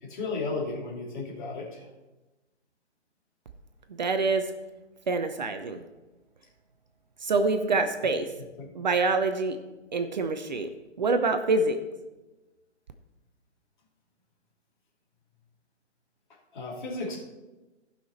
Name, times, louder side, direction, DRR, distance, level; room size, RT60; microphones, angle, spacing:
voice 1, 0.0-1.9 8.6-8.7 16.5-17.2, left 3 dB, 45° left, -3 dB, 2.8 m, -34 dB
voice 2, 4.0-4.5 5.1-5.8 7.2-8.3 8.7-9.6 9.9-10.7 11.0-11.8, right 3 dB, 40° right, 8 dB, 0.7 m, -26 dB
15.5 x 5.8 x 4.3 m, 1.1 s
figure-of-eight pair, 135°, 35 cm